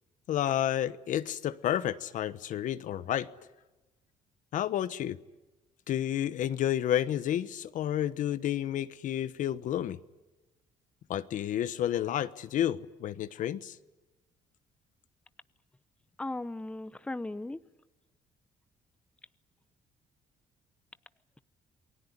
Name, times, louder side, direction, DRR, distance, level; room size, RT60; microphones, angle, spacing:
voice 1, 0.3-3.3 4.5-5.2 5.9-10.0 11.1-13.8, left 11 dB, 65° left, 14 dB, 1.1 m, -30 dB
voice 2, 16.2-17.6, left 2 dB, 10° left, 15 dB, 0.8 m, -37 dB
28.5 x 20.0 x 9.8 m, 1.1 s
cardioid pair, 100°, 14 cm